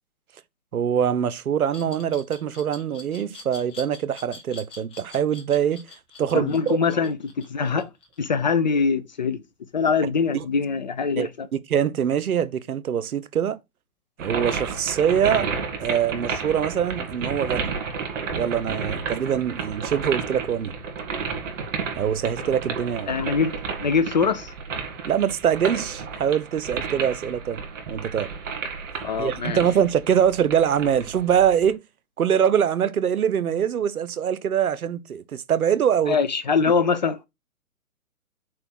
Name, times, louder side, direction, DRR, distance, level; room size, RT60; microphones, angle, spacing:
voice 1, 0.7-5.8 6.2-6.8 10.3-10.4 11.2-13.6 14.2-15.5 15.8-17.7 18.4-20.7 22.0-23.1 25.1-27.6 27.9-28.3 29.2-31.8 32.2-36.2, right 8 dB, 75° right, 0.8 m, -23 dB
Glass, 1.7-8.5, left 3 dB, 10° left, 1.0 m, -44 dB
voice 2, 6.3-7.9 8.2-9.4 9.7-11.5 23.1-24.5 29.0-29.6 36.1-37.2, left 5 dB, 30° left, 0.4 m, -23 dB
sound 1, 14.2-31.7, right 5 dB, 55° right, 2.2 m, -32 dB
4.6 x 4.4 x 5.9 m
hypercardioid pair, 135°, 44 cm